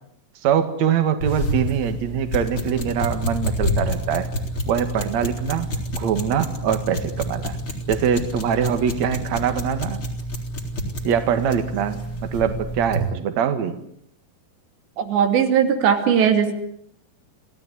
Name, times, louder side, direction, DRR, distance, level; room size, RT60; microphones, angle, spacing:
voice 1, 0.4-4.3 4.7-7.6 7.9-10.0 11.0-13.8, right 8 dB, 50° right, 9 dB, 2.8 m, -23 dB
sound 1, 1.2-13.1, equal, 30° left, 4.6 m, -28 dB
voice 2, 15.0-16.5, right 8 dB, 85° right, 6 dB, 5.0 m, -18 dB
29.0 x 17.5 x 10.0 m, 0.72 s
omnidirectional pair, 4.9 m